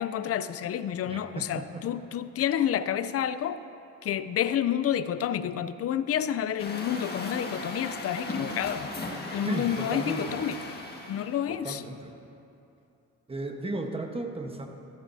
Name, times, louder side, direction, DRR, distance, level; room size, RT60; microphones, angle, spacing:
voice 1, 0.0-3.6 4.0-10.6 11.1-11.8, left 10 dB, 50° left, 13 dB, 0.5 m, -29 dB
voice 2, 1.1-1.8 9.4-10.4 11.5-12.1 13.3-14.7, right 2 dB, 20° right, 4 dB, 1.1 m, -35 dB
Truck, 6.6-11.4, left 2 dB, 30° left, 1.7 m, -37 dB
14.0 x 13.5 x 2.7 m, 2.7 s
cardioid pair, 90°, 30 cm